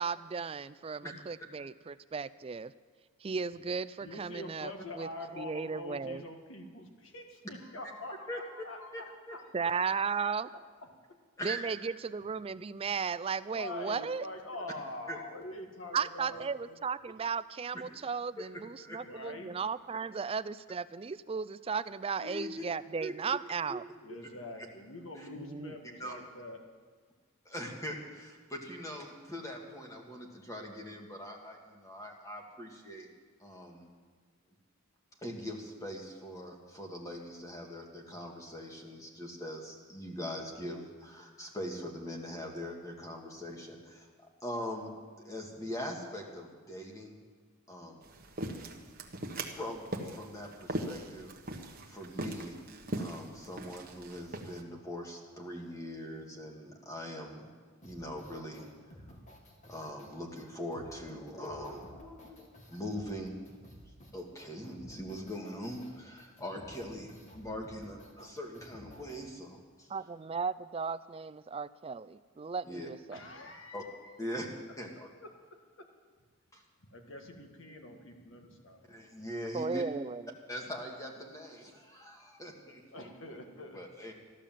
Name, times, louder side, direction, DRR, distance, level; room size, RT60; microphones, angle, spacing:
voice 1, 0.0-2.7 3.2-5.1 5.4-6.3 9.5-10.5 11.4-14.3 15.9-23.8 25.4-25.8 69.9-73.2 79.5-80.2, right 5 dB, 25° right, 15 dB, 0.3 m, -35 dB
voice 2, 4.0-9.8 13.5-16.8 19.0-19.5 24.0-26.6 73.1-74.1 75.2-75.3 76.9-78.9 82.9-83.8, left 1 dB, 65° left, 3 dB, 1.8 m, -45 dB
voice 3, 8.9-9.4 11.4-11.6 15.1-15.2 16.3-16.4 17.7-17.8 18.4-18.5 18.8-19.0 22.2-22.5 23.0-23.4 23.7-23.8 24.1-24.2 25.2-25.3 26.0-26.2 27.5-33.1 33.4-33.9 35.2-44.9 45.2-47.2 47.7-48.0 48.6-48.7 49.5-52.6 53.0-57.5 57.8-58.7 59.7-63.4 64.1-69.9 72.7-72.9 73.7-73.8 74.2-74.5 74.8-75.1 76.5-76.6 78.9-79.8 80.5-84.1, equal, 15° left, 0 dB, 1.9 m, -42 dB
sound 1, 48.0-54.6, right 1 dB, 45° right, 1.3 m, -40 dB
sound 2, 57.8-69.2, equal, 35° left, 2.0 m, -54 dB
14.5 x 11.5 x 7.5 m, 1.5 s
head